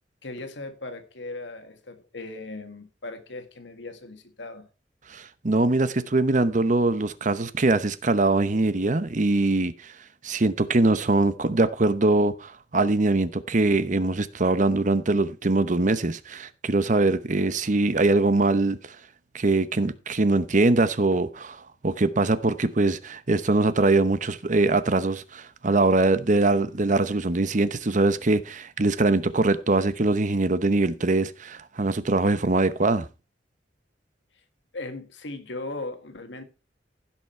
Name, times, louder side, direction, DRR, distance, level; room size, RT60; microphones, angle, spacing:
voice 1, 0.2-4.7 34.7-36.4, left 2 dB, 80° left, 1.8 m, -38 dB
voice 2, 5.1-9.7 10.2-18.8 19.3-21.6 21.8-33.1, right 2 dB, 45° right, 0.9 m, -22 dB
16.0 x 6.1 x 4.4 m
head